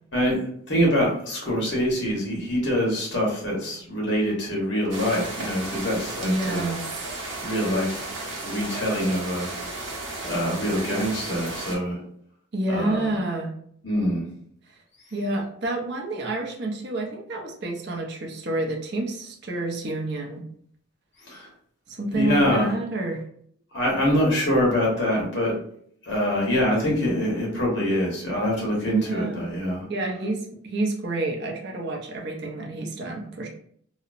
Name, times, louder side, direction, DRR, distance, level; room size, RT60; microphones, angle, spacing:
voice 1, 0.1-6.7 7.4-8.1 8.4-9.5 10.2-12.0 12.7-13.1 13.8-14.2 21.3-21.5 22.1-22.7 23.7-25.5 26.1-29.9, equal, 60° left, -3 dB, 1.1 m, -24 dB
sound 1, 4.9-11.8, right 2 dB, 75° right, 0.9 m, -34 dB
voice 2, 6.2-6.9 12.5-13.5 15.1-20.4 21.9-23.2 28.9-29.4 29.9-30.4 30.6-33.5, right 2 dB, 55° right, 1 dB, 0.5 m, -28 dB
2.8 x 2.0 x 2.4 m, 0.64 s
head